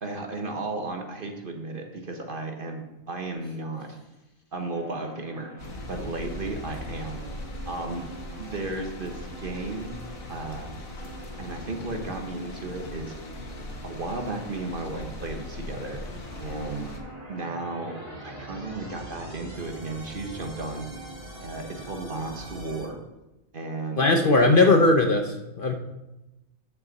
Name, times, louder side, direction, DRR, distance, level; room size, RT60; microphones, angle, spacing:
voice 1, 0.0-4.0 4.5-5.5 5.8-7.2 7.7-8.0 8.4-10.0 10.3-10.7 11.4-13.1 13.8-16.0 16.4-16.9 17.3-18.0 18.2-20.9 21.4-23.0 23.5-24.8, right 2 dB, 45° right, 4 dB, 1.2 m, -34 dB
sound 1, 4.7-22.9, right 1 dB, 30° right, 2.3 m, -43 dB
sound 2, 5.6-17.0, left 1 dB, 85° left, 1.7 m, -40 dB
voice 2, 24.0-25.7, left 2 dB, 50° left, 4 dB, 0.8 m, -19 dB
14.0 x 5.9 x 4.1 m, 0.99 s
omnidirectional pair, 1.4 m